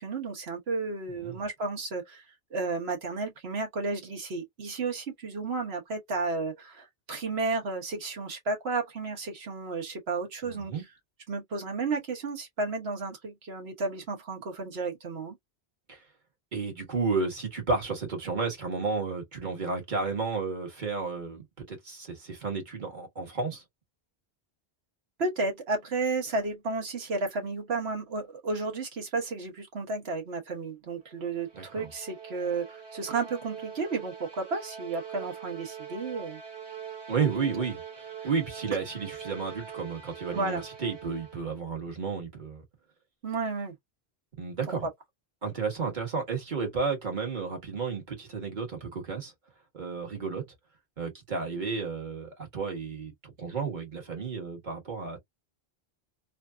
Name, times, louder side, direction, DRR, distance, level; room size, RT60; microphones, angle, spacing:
voice 1, 0.0-2.2 2.5-10.7 11.3-15.4 25.2-36.4 40.3-40.6 43.2-43.8 44.7-44.9, right 3 dB, 70° right, 1.5 m, -32 dB
voice 2, 10.4-10.8 15.9-16.0 16.5-23.6 31.5-31.9 37.1-42.6 44.4-44.9 45.4-49.3 49.7-50.4 51.0-55.2, right 4 dB, 45° right, 1.4 m, -32 dB
sound 1, 31.1-41.6, right 7 dB, 30° right, 0.7 m, -43 dB
3.2 x 2.5 x 2.2 m
omnidirectional pair, 1.1 m